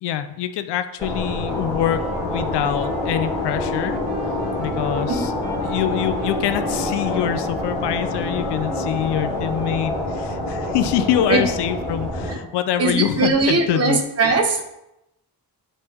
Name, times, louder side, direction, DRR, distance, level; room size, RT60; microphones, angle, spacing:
voice 1, 0.0-4.0 4.6-5.3 5.6-14.0, left 10 dB, 80° left, 11 dB, 0.6 m, -25 dB
sound 1, 1.0-12.3, left 2 dB, 10° left, 2.4 m, -26 dB
Wind instrument woodwind instrument, 1.4-10.2, right 1 dB, 20° right, 1.3 m, -39 dB
voice 2, 12.8-14.6, right 3 dB, 40° right, 5 dB, 0.8 m, -20 dB
9.6 x 3.3 x 3.5 m, 0.86 s
wide cardioid pair, 160°, 41 cm